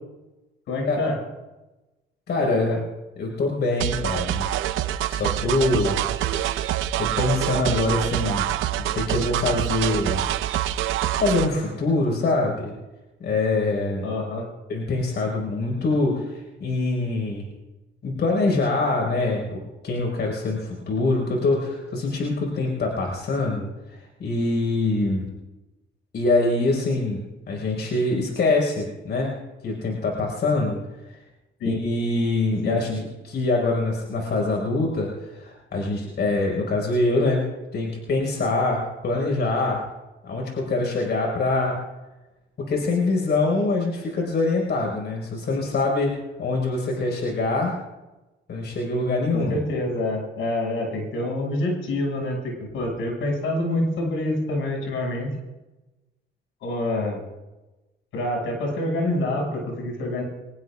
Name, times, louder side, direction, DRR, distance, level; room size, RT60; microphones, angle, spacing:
voice 1, 0.7-1.2 2.7-2.8 14.0-14.5 31.6-31.8 32.6-33.0 49.3-55.3 56.6-57.2 58.1-60.2, left 1 dB, 85° left, 0 dB, 6.6 m, -26 dB
voice 2, 2.3-2.7 3.2-4.5 5.1-8.5 8.9-10.2 11.2-12.7 13.2-14.1 14.7-17.4 18.0-25.2 26.1-29.3 29.6-30.8 31.1-31.2 31.6-32.9 33.2-37.4 37.7-39.8 40.2-41.8 42.7-46.1 46.4-47.8 48.5-49.6, left 2 dB, 60° left, 0 dB, 5.1 m, -24 dB
sound 1, 3.8-11.5, right 12 dB, 85° right, 0.7 m, -26 dB
24.5 x 20.0 x 2.5 m, 1.1 s
cardioid pair, 90°, 20 cm